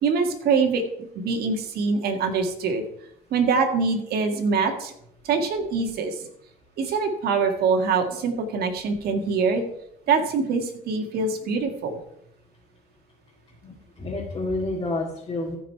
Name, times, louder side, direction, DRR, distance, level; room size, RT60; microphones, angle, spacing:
voice 1, 0.0-2.8 3.3-4.9 5.2-6.3 6.8-9.6 10.1-12.0, right 4 dB, 70° right, 5 dB, 1.9 m, -24 dB
voice 2, 13.6-15.6, left 2 dB, 25° left, -4 dB, 2.0 m, -29 dB
15.0 x 5.1 x 4.7 m, 0.73 s
cardioid pair, 110°, 17 cm